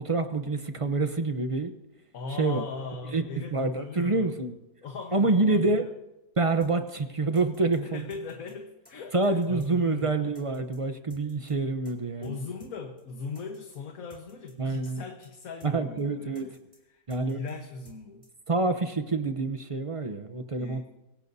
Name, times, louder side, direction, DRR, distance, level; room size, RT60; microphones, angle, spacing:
voice 1, 0.0-1.7 2.4-2.6 3.1-3.2 3.5-4.6 5.1-5.8 6.4-8.0 9.1-12.4 14.6-15.0 15.6-16.5 17.1-17.4 18.5-20.9, right 3 dB, 35° right, 8 dB, 0.5 m, -27 dB
voice 2, 2.1-4.3 4.8-5.9 7.8-10.1 12.2-16.6 16.9-18.2 20.6-20.8, left 4 dB, 60° left, 3 dB, 1.6 m, -39 dB
sound 1, 6.6-6.7 7.0-7.1 7.3-7.8 8.1-8.5 8.8-8.9 9.2-9.7 10.0-10.1 10.3-10.8 11.1-11.5 11.8-11.9 12.2-12.3 12.6-12.7 13.0-13.1 13.3-13.8 14.1-14.5 14.8-14.9 15.2-15.7 16.0-16.1 16.3-16.8 17.1-17.5 17.8-18.0 18.2-18.3, equal, 5° left, 3.8 m, -56 dB
26.0 x 16.5 x 2.7 m, 0.99 s
omnidirectional pair, 1.7 m